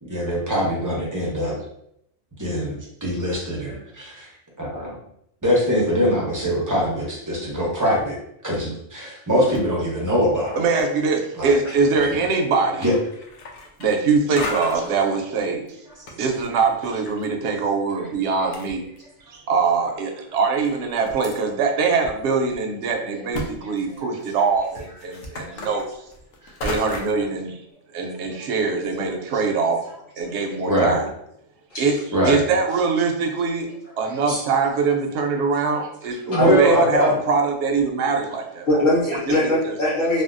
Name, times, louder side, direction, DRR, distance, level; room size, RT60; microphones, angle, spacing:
voice 1, 0.0-1.6 2.4-4.3 4.6-5.0 5.4-10.6 11.3-11.6 11.9-12.2 12.8-12.9 16.0-16.1 23.6-23.7 25.4-25.6 26.4-26.5 28.3-28.5 30.3-31.0 32.1-32.4 34.0-34.1 36.3-37.1, equal, 25° right, -4 dB, 0.5 m, -23 dB
voice 2, 10.6-12.9 13.8-15.6 16.2-18.8 19.3-25.9 26.6-27.6 27.9-29.8 30.2-31.1 31.8-32.0 32.2-33.7 34.0-36.2 36.5-38.8 39.3-39.5, right 4 dB, 65° right, 3 dB, 0.8 m, -23 dB
sound 1, 12.0-12.4 12.7-14.1 14.4-15.0 15.7-17.3 17.5-17.6 18.2-18.3 18.5-19.3 19.9-20.0 20.7-21.4 22.0-22.1 22.5-22.6 23.3-23.5 23.8-27.2, left 2 dB, 85° left, 1.0 m, -34 dB
voice 3, 38.6-40.2, left 1 dB, 45° left, -9 dB, 1.5 m, -22 dB
3.3 x 2.2 x 2.4 m, 0.76 s
omnidirectional pair, 1.4 m